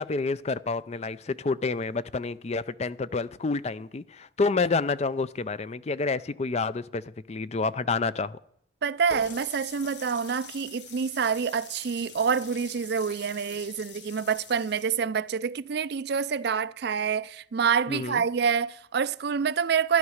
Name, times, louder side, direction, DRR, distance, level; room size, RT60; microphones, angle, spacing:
voice 1, 0.0-8.4 17.9-18.2, left 4 dB, 35° left, 0.4 m, -29 dB
voice 2, 8.8-20.0, right 6 dB, 55° right, 0.4 m, -27 dB
Water tap faucet, 9.1-14.9, left 5 dB, 65° left, 1.3 m, -45 dB
12.5 x 11.0 x 6.5 m
head